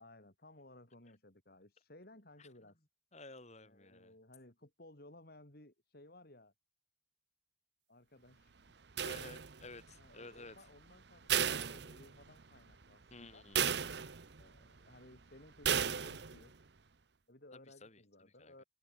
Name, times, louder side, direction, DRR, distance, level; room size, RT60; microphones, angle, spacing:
voice 1, 0.0-2.8 3.6-6.5 7.9-8.5 9.9-13.4 14.4-16.6 17.3-18.6, left 1 dB, 55° left, 3.8 m, -59 dB
voice 2, 3.1-4.1 9.0-10.6 13.1-13.8 17.8-18.0 18.4-18.6, left 2 dB, 35° left, 4.8 m, -53 dB
sound 1, 9.0-9.8 11.3-12.4 12.8-12.9 13.6-14.4 15.6-16.4, right 8 dB, 60° right, 0.9 m, -34 dB
head